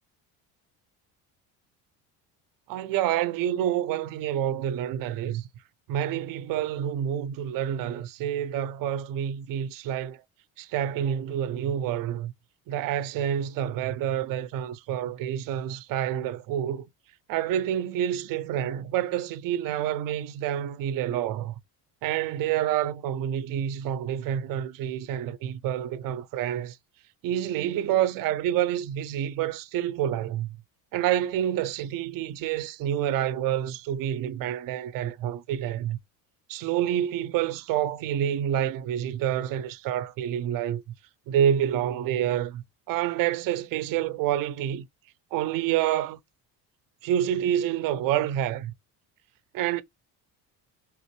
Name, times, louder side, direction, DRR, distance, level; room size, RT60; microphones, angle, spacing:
voice 1, 2.7-5.5 5.9-10.2 10.6-12.3 12.7-16.8 17.3-21.6 22.0-26.8 27.2-30.6 30.9-36.0 36.5-40.8 41.3-44.9 45.3-46.2 47.0-48.7 49.5-49.8, right 10 dB, 55° right, 0.5 m, -28 dB
3.5 x 2.5 x 3.0 m
cardioid pair, 100°, 41 cm